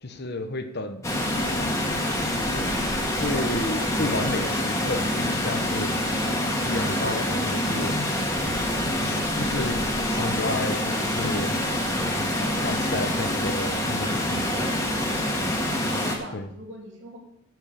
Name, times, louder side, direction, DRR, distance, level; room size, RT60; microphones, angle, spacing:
voice 1, 0.0-1.1 1.4-1.8 2.3-5.9 6.3-7.9 9.0-11.5 12.4-14.5 16.3-16.5, left 2 dB, 50° left, 7 dB, 1.1 m, -32 dB
Water, 1.0-16.2, left 1 dB, 15° left, 1.9 m, -26 dB
voice 2, 14.4-14.9 15.8-17.2, right 1 dB, 60° right, -1 dB, 3.0 m, -41 dB
9.1 x 8.2 x 6.7 m, 0.76 s
head